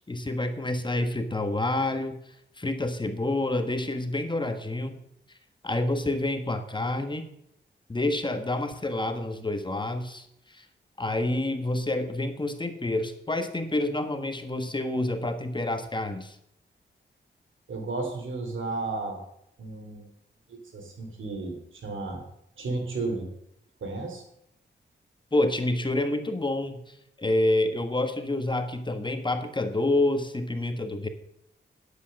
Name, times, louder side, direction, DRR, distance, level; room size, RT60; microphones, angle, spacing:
voice 1, 0.1-2.2 2.6-5.0 5.6-7.2 7.9-10.2 10.5-10.6 11.0-16.3 25.3-26.8 27.2-31.1, left 2 dB, 25° left, 7 dB, 1.4 m, -28 dB
voice 2, 17.7-19.2 19.6-20.1 20.5-22.2 22.6-23.3 23.8-24.2, right 3 dB, 80° right, 4 dB, 2.9 m, -33 dB
9.8 x 8.4 x 6.5 m, 0.76 s
cardioid pair, 70°, 20 cm